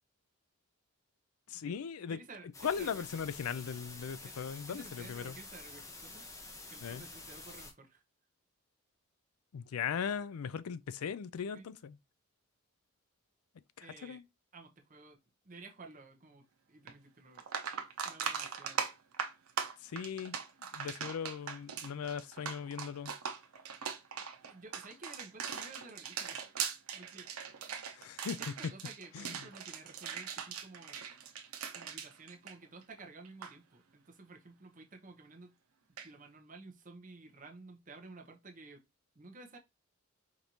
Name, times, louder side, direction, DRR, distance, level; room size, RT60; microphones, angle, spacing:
voice 1, 1.5-2.2 2.6-5.3 6.8-7.0 9.5-11.9 13.8-14.2 19.8-20.4 20.7-23.1 28.0-28.4 29.1-29.3, left 7 dB, 85° left, 0.4 m, -38 dB
voice 2, 2.1-3.0 4.2-4.4 4.7-6.3 6.7-8.0 11.5-11.7 13.8-14.2 14.5-15.2 15.4-17.5 18.0-18.8 24.1-27.5 28.3-31.1 31.7-35.6 36.0-38.8 39.1-39.6, right 3 dB, 35° right, 0.8 m, -53 dB
sound 1, 2.5-7.7, left 3 dB, 15° left, 0.6 m, -49 dB
sound 2, 16.9-17.0 17.4-33.0 33.2-33.5 36.0-36.1, right 7 dB, 90° right, 0.8 m, -40 dB
5.1 x 2.6 x 2.9 m
head